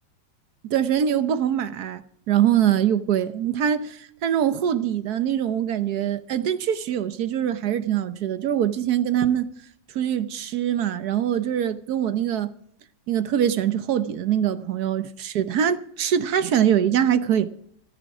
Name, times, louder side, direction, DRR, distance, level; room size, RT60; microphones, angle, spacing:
voice 1, 0.7-9.5 9.9-12.5 13.1-17.5, right 9 dB, 65° right, 1.2 m, -23 dB
14.0 x 13.0 x 4.8 m
omnidirectional pair, 2.0 m